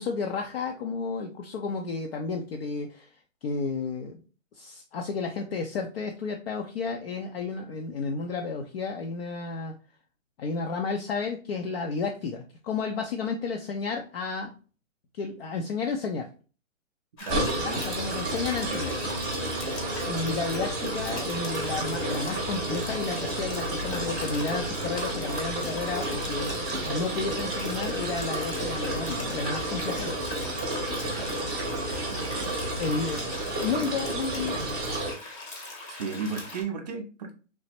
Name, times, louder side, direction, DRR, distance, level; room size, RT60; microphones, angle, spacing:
voice 1, 0.0-3.1 3.4-4.2 4.5-9.7 10.4-14.5 15.1-16.3 17.6-18.9 20.1-26.6 26.8-30.2 32.8-33.3 33.6-34.7, left 4 dB, 50° left, 3 dB, 0.5 m, -32 dB
sound 1, 17.2-36.6, left 2 dB, 25° left, 0.8 m, -41 dB
sound 2, 17.3-35.1, right 1 dB, 10° right, 0.8 m, -31 dB
voice 2, 17.3-17.8 31.2-31.4 32.1-32.6 34.6-34.7 35.9-37.3, right 5 dB, 35° right, 3 dB, 0.5 m, -35 dB
3.2 x 2.0 x 4.2 m, 0.36 s
hypercardioid pair, 150°, 39 cm